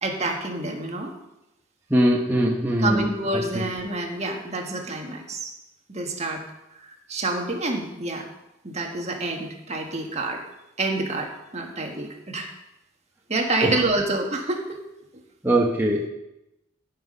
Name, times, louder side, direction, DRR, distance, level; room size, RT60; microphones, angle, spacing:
voice 1, 0.0-1.1 2.8-5.5 5.9-6.4 6.8-8.2 8.6-10.4 10.8-12.5 13.3-14.8, right 2 dB, 35° right, 2 dB, 1.6 m, -28 dB
voice 2, 1.9-3.1 3.5-3.6 13.6-13.7 15.4-16.1, right 1 dB, 10° right, -2 dB, 1.0 m, -21 dB
15.0 x 6.0 x 5.4 m, 0.91 s
head